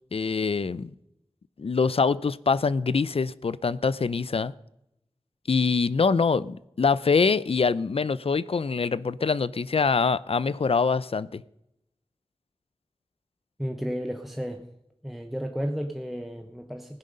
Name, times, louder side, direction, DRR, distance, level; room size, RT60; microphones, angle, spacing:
voice 1, 0.1-0.9 1.6-4.5 5.5-11.4, left 5 dB, 65° left, 18 dB, 0.5 m, -24 dB
voice 2, 13.6-14.7 15.0-17.0, equal, ahead, 4 dB, 0.9 m, -33 dB
16.0 x 10.5 x 5.3 m, 0.83 s
wide cardioid pair, 70°, 11 cm